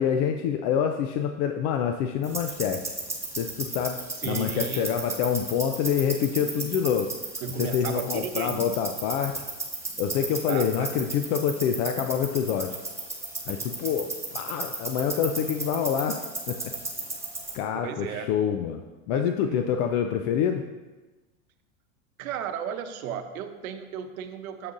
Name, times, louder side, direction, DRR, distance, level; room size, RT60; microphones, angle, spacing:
voice 1, 0.0-2.8 3.4-4.0 4.2-7.1 7.6-9.4 10.0-12.8 13.5-16.2 16.5-16.6 17.5-18.8 19.1-20.6, left 8 dB, 55° left, 6 dB, 0.6 m, -26 dB
sound 1, 2.2-17.6, right 2 dB, 5° right, 1.6 m, -35 dB
voice 2, 4.2-4.9 6.4-6.7 7.4-8.7 10.2-11.1 13.8-14.3 17.7-18.4 19.1-19.6 22.2-24.7, right 7 dB, 75° right, 8 dB, 0.9 m, -35 dB
9.4 x 7.8 x 2.6 m, 1.2 s
hypercardioid pair, 100°, 43 cm